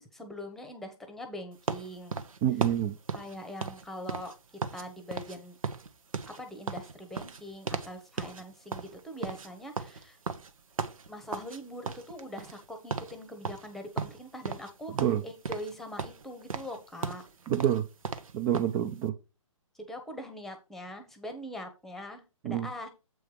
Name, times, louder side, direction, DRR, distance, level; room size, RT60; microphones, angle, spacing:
voice 1, 0.0-2.2 3.1-4.3 4.7-5.6 6.3-10.2 11.1-17.2 19.8-22.9, left 1 dB, ahead, 6 dB, 1.0 m, -42 dB
sound 1, 1.7-4.8 5.1-5.4 5.6-7.9 8.2-8.4 8.7-11.6 11.8-12.6 12.9-13.1 13.4-14.7 15.0-15.7 16.0-18.8, right 5 dB, 80° right, 1.1 m, -36 dB
voice 2, 2.4-2.9 15.0-15.2 17.5-17.9 18.3-19.1 22.4-22.7, right 11 dB, 15° right, 9 dB, 0.4 m, -27 dB
7.9 x 4.6 x 5.0 m, 0.28 s
hypercardioid pair, 150°, 18 cm